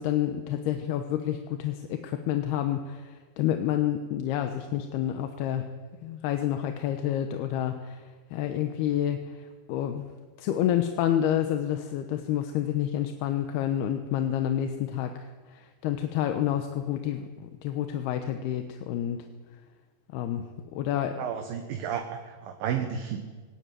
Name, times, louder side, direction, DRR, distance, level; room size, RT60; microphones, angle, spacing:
voice 1, 0.0-5.7 6.0-8.0 8.3-9.2 9.7-10.0 10.4-15.1 15.5-19.2 20.1-20.4 20.7-21.2, left 11 dB, 85° left, 6 dB, 3.1 m, -29 dB
voice 2, 21.2-23.2, right 8 dB, 70° right, 5 dB, 2.8 m, -32 dB
20.5 x 18.0 x 9.2 m, 1.4 s
omnidirectional pair, 4.5 m